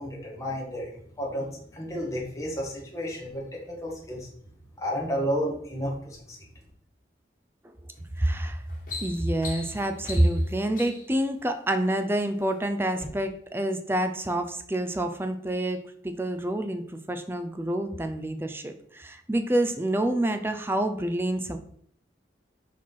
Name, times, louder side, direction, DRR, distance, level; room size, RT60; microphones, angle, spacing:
voice 1, 0.0-4.3 4.8-6.4, equal, 20° left, -2 dB, 1.8 m, -32 dB
sound 1, 7.9-8.2 8.6-11.2 12.0-12.5 12.9-13.1, left 3 dB, 50° left, 2.1 m, -40 dB
voice 2, 8.2-8.6 9.0-21.6, right 1 dB, 15° right, 7 dB, 0.5 m, -27 dB
4.9 x 4.5 x 5.5 m, 0.63 s
head